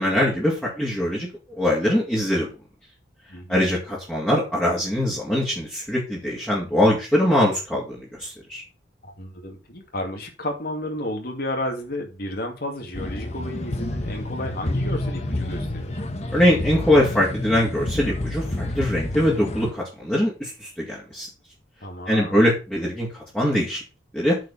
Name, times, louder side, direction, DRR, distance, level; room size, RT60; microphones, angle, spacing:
voice 1, 0.0-2.5 3.5-8.6 16.3-21.3 22.1-23.8 24.1-24.4, left 1 dB, 5° left, 2.6 m, -22 dB
voice 2, 3.3-3.8 9.0-16.0 21.8-22.5, left 1 dB, 55° left, 2.4 m, -32 dB
sound 1, 12.9-19.7, left 1 dB, 35° left, 1.2 m, -29 dB
9.0 x 4.8 x 5.6 m
head